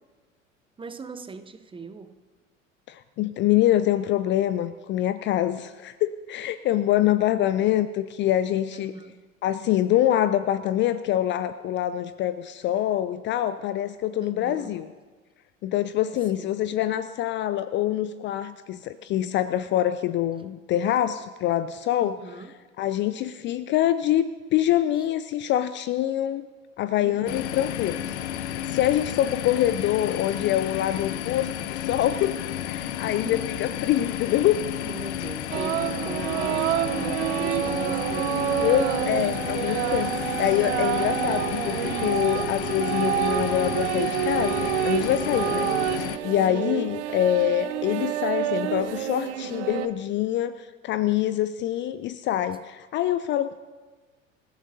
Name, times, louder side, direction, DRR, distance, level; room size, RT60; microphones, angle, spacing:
voice 1, 0.8-2.2 8.7-9.3 14.2-14.9 16.3-16.6 22.0-22.6 27.0-27.6 33.1-33.5 34.8-39.0 45.2-45.4 46.5-46.7, right 4 dB, 15° right, 11 dB, 0.7 m, -40 dB
voice 2, 2.9-8.9 9.4-14.9 15.6-22.2 22.8-26.5 26.8-32.4 32.7-34.6 38.6-45.7 46.2-53.6, left 12 dB, 30° left, 14 dB, 0.4 m, -25 dB
sound 1, 27.3-46.2, left 11 dB, 60° left, 0.8 m, -32 dB
sound 2, 35.5-49.9, right 12 dB, 60° right, 0.9 m, -28 dB
27.0 x 14.5 x 2.7 m, 1.3 s
figure-of-eight pair, 70°, 39 cm